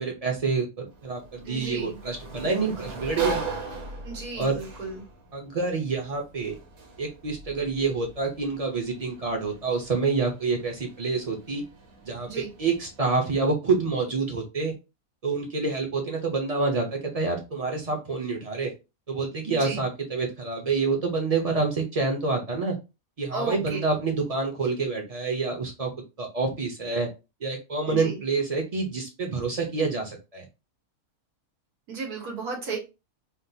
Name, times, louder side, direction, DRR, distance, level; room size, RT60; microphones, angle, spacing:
voice 1, 0.0-3.4 4.4-4.6 5.3-6.6 7.0-11.6 12.0-14.8 15.2-18.7 19.1-22.8 23.2-25.9 26.2-27.1 27.4-30.5, right 4 dB, 40° right, 2 dB, 0.6 m, -27 dB
Sliding door, 0.9-13.5, right 4 dB, 55° right, 1.1 m, -39 dB
voice 2, 1.5-2.0 2.4-2.9 4.0-5.0 12.3-12.5 19.5-19.8 23.3-23.8 27.9-28.2 31.9-32.8, right 4 dB, 90° right, -2 dB, 1.7 m, -34 dB
3.7 x 2.3 x 2.7 m, 0.27 s
omnidirectional pair, 1.5 m